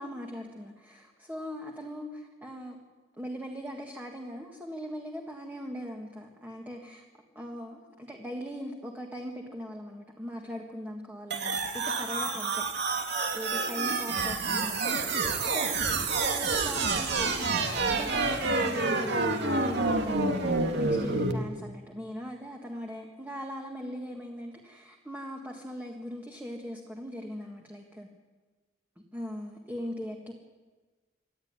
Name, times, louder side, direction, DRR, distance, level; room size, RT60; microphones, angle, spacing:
voice 1, 0.0-2.8 3.2-7.0 7.4-12.6 13.3-28.1 29.1-30.3, equal, 10° right, 1 dB, 1.9 m, -40 dB
sound 1, 11.3-21.3, right 3 dB, 65° right, 2.4 m, -28 dB
26.0 x 13.0 x 9.7 m, 1.3 s
head